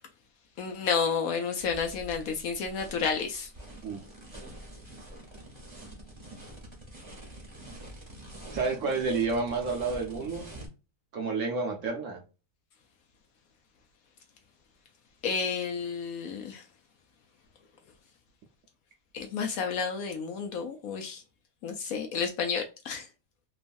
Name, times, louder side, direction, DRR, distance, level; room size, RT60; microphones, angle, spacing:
voice 1, 0.6-3.5 15.2-16.6 19.1-21.2 21.6-23.1, left 6 dB, 70° left, 0.9 m, -31 dB
sound 1, 1.6-10.7, right 1 dB, 25° right, 0.7 m, -46 dB
voice 2, 8.5-10.5 11.1-12.2, right 4 dB, 65° right, 0.8 m, -30 dB
3.0 x 2.3 x 2.4 m
omnidirectional pair, 1.7 m